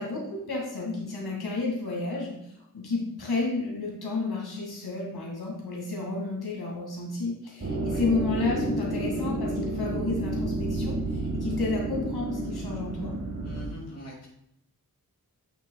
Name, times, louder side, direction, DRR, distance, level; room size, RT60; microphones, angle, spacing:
voice 1, 0.0-2.4 2.7-13.2, left 3 dB, 80° left, -3 dB, 2.0 m, -31 dB
sound 1, 7.6-13.7, right 1 dB, 40° right, 1.5 m, -30 dB
voice 2, 13.4-14.3, left 1 dB, 40° left, -3 dB, 2.3 m, -43 dB
8.7 x 7.9 x 2.2 m, 0.76 s
wide cardioid pair, 130°, 37 cm